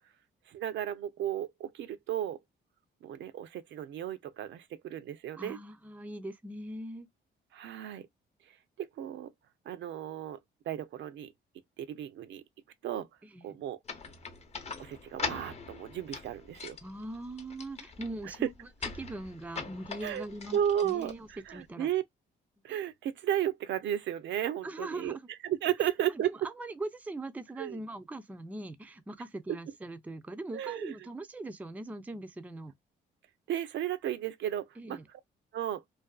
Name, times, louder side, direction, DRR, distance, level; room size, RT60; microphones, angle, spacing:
voice 1, 0.5-2.4 3.0-5.6 7.5-8.1 8.5-9.3 9.7-10.4 10.7-11.3 11.8-12.4 12.8-13.1 13.4-13.8 14.8-16.8 20.0-20.2 20.5-22.0 22.6-25.2 25.4-26.3 27.6-27.8 30.5-30.9 33.5-35.0 35.5-35.8, right 11 dB, 70° right, 0.5 m, -34 dB
voice 2, 5.4-7.1 13.2-13.6 16.8-18.5 19.0-21.9 24.6-25.3 25.8-32.7 34.8-35.1, right 2 dB, 10° right, 0.4 m, -41 dB
sound 1, 13.8-21.7, left 5 dB, 35° left, 0.6 m, -42 dB
2.5 x 2.3 x 2.2 m
cardioid pair, 90°, 20 cm